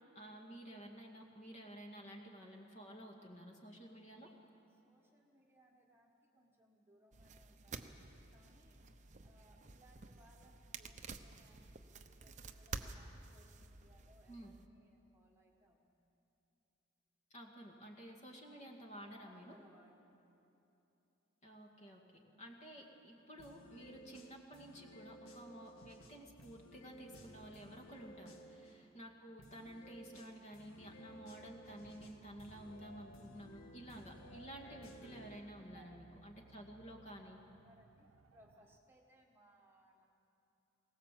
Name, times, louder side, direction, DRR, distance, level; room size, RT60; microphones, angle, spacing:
voice 1, 0.2-4.3 14.3-14.5 17.3-19.5 21.4-22.0 22.4-28.3 28.7-37.4, right 1 dB, 35° left, 1 dB, 2.1 m, -52 dB
voice 2, 4.7-8.8 9.2-16.1 19.2-20.2 28.2-28.5 35.6-36.2 37.2-40.1, right 1 dB, 10° right, -1 dB, 1.5 m, -67 dB
sound 1, 7.1-14.7, right 4 dB, 35° right, 0.8 m, -51 dB
sound 2, 23.4-28.7 29.4-35.4, equal, 80° left, 1.7 m, -57 dB
sound 3, 30.7-38.8, right 4 dB, 80° right, 0.7 m, -65 dB
21.0 x 18.5 x 7.6 m, 2.9 s
head